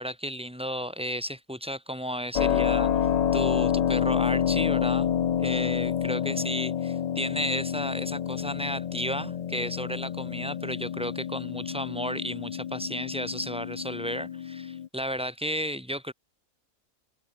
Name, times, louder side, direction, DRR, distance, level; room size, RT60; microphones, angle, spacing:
voice 1, 0.0-5.1 5.4-16.1, equal, 5° right, 3.4 m, -33 dB
Keyboard (musical), 2.3-14.9, left 9 dB, 65° left, 0.4 m, -28 dB
omnidirectional pair, 1.4 m